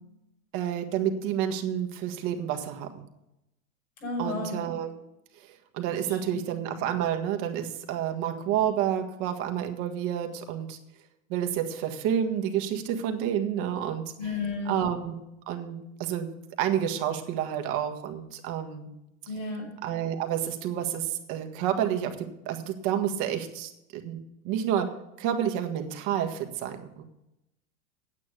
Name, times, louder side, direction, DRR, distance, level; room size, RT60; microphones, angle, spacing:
voice 1, 0.5-3.0 4.2-5.0 5.4-10.8 11.3-14.3 14.6-15.2 15.5-16.3 16.6-18.9 19.8-24.9 25.2-27.0, right 9 dB, 50° right, 6 dB, 1.8 m, -29 dB
voice 2, 4.0-4.6 6.3-6.4 14.2-14.7 19.3-19.7, left 3 dB, 80° left, 0 dB, 5.5 m, -32 dB
9.3 x 8.6 x 6.7 m, 0.88 s
hypercardioid pair, 105°, 41 cm